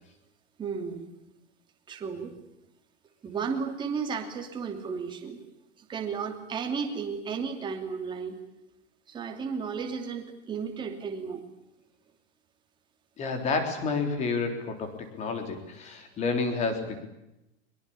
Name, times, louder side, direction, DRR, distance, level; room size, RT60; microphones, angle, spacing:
voice 1, 0.6-1.1 1.9-2.3 3.2-5.4 5.8-8.4 9.1-11.4, right 5 dB, 15° right, 3 dB, 2.9 m, -33 dB
voice 2, 13.2-17.0, left 4 dB, 20° left, 7 dB, 3.7 m, -30 dB
23.5 x 23.0 x 8.7 m, 0.92 s
supercardioid pair, 175°, 35 cm